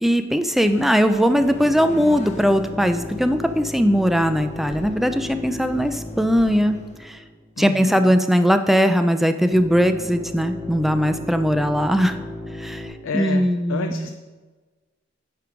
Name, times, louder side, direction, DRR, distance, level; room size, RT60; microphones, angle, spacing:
voice 1, 0.0-7.2 7.6-12.2 12.6-12.9 13.1-14.1, equal, ahead, 8 dB, 0.3 m, -20 dB
sound 1, 0.6-7.0, left 1 dB, 35° left, 0.7 m, -43 dB
sound 2, 1.4-7.7 9.5-12.9, left 1 dB, 20° right, 2.5 m, -35 dB
voice 2, 7.6-8.2 13.0-14.1, left 4 dB, 70° left, 6 dB, 0.4 m, -30 dB
8.3 x 4.6 x 5.0 m, 1.3 s
head